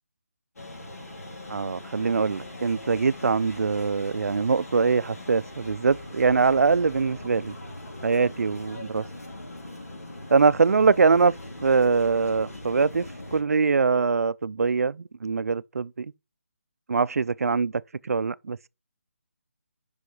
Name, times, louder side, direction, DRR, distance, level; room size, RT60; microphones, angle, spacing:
sound 1, 0.6-13.4, left 1 dB, 90° left, 3.0 m, -41 dB
voice 1, 1.5-7.6 8.0-9.0 10.3-11.3 11.6-16.1 16.9-18.7, right 4 dB, 80° right, 0.4 m, -23 dB
6.4 x 5.6 x 4.9 m
hypercardioid pair, 180°, 8 cm